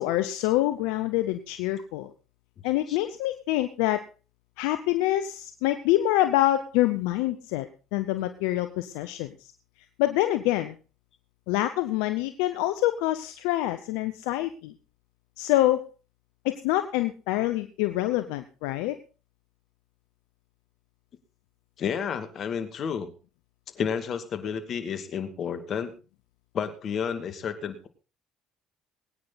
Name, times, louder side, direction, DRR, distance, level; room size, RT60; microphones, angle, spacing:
voice 1, 0.0-2.1 2.6-4.0 4.6-7.7 7.9-9.5 10.0-10.8 11.5-14.7 15.4-15.8 16.4-19.0, left 15 dB, 80° left, 9 dB, 0.9 m, -26 dB
voice 2, 21.8-23.1 23.7-25.9 26.5-27.9, left 7 dB, 55° left, 9 dB, 2.4 m, -31 dB
21.5 x 9.7 x 4.1 m, 0.34 s
hypercardioid pair, 65°, 0 cm